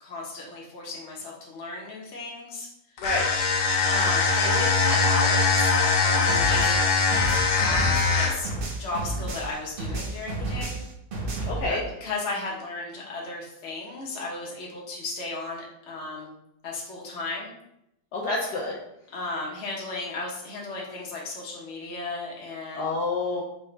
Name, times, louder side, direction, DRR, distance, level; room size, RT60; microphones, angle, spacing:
voice 1, 0.0-2.7 3.9-7.1 7.6-8.5 8.8-10.8 11.7-16.3 16.6-17.5 19.1-23.0, left 2 dB, 45° left, -3 dB, 1.2 m, -35 dB
sound 1, 3.0-8.5, left 4 dB, 85° left, 1.6 m, -22 dB
sound 2, 6.3-9.5 9.8-11.6, right 2 dB, 65° right, 0.5 m, -31 dB
voice 2, 11.5-11.8 18.1-18.7 22.7-23.4, left 3 dB, 65° left, -3 dB, 1.2 m, -28 dB
4.3 x 3.4 x 3.3 m, 0.81 s
omnidirectional pair, 2.0 m